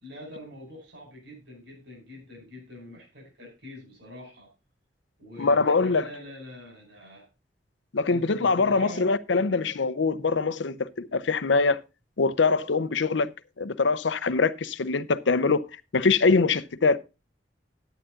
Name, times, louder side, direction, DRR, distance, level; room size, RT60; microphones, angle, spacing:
voice 1, 0.0-4.5 5.2-7.3 8.1-9.1, left 1 dB, 65° right, 5.1 m, -44 dB
voice 2, 5.4-6.1 7.9-11.8 12.2-13.3 13.6-15.6 15.9-17.0, left 4 dB, 85° left, 0.7 m, -23 dB
11.5 x 9.2 x 3.8 m
head